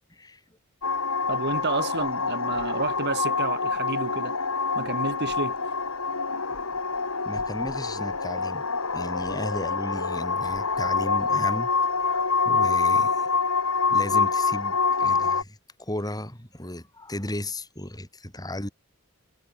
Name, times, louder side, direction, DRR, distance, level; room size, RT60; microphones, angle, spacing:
voice 1, 0.1-0.4 7.2-8.7 8.9-11.7 12.0-13.3 13.9-18.7, left 1 dB, 15° left, 6.6 m, -35 dB
sound 1, 0.8-15.4, left 4 dB, 75° left, 3.4 m, -26 dB
voice 2, 1.3-4.3 4.7-5.6, right 3 dB, 50° right, 1.4 m, -30 dB
head